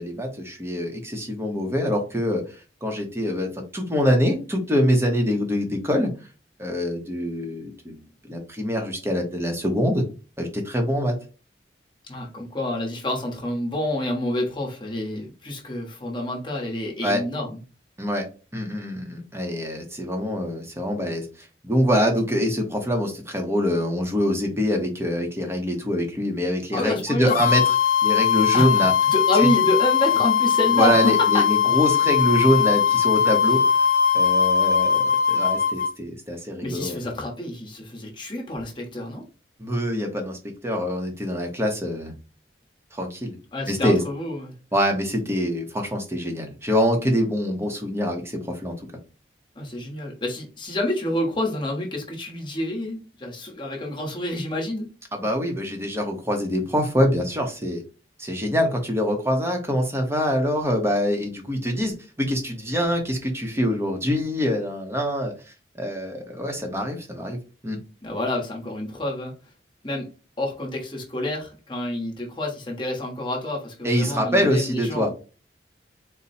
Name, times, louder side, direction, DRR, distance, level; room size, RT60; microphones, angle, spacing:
voice 1, 0.0-6.1 6.6-10.0 10.4-11.1 17.0-17.2 18.0-18.2 18.5-27.7 28.0-28.9 29.4-29.5 30.7-33.6 34.1-37.0 39.6-42.1 42.9-43.4 43.7-44.0 44.7-48.7 55.1-57.8 58.2-65.3 65.7-67.4 67.6-67.8 73.8-75.1, equal, 15° right, 3 dB, 0.8 m, -24 dB
voice 2, 12.1-17.6 26.7-27.4 28.5-31.4 36.6-39.2 43.5-44.5 49.5-54.9 68.0-69.3 69.8-70.1 70.4-75.1, left 1 dB, 25° left, -1 dB, 1.1 m, -28 dB
sound 1, 27.3-35.9, left 7 dB, 45° left, 0.4 m, -20 dB
4.1 x 2.2 x 4.1 m, 0.34 s
head